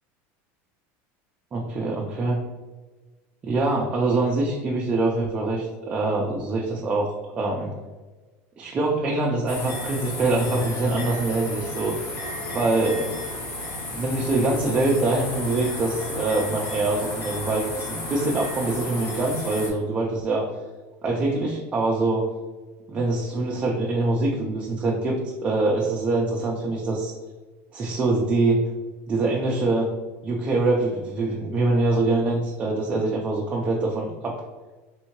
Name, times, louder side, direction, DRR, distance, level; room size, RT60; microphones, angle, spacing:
voice 1, 1.5-2.4 3.4-7.8 8.6-11.9 12.5-13.1 13.9-20.5 21.0-22.3 22.9-27.1 27.7-28.6 29.1-29.9 30.2-34.4, right 2 dB, 20° right, -2 dB, 0.4 m, -24 dB
sound 1, 9.5-19.7, left 2 dB, 35° left, 0.9 m, -33 dB
3.5 x 2.6 x 2.9 m, 1.3 s
cardioid pair, 165°, 7 cm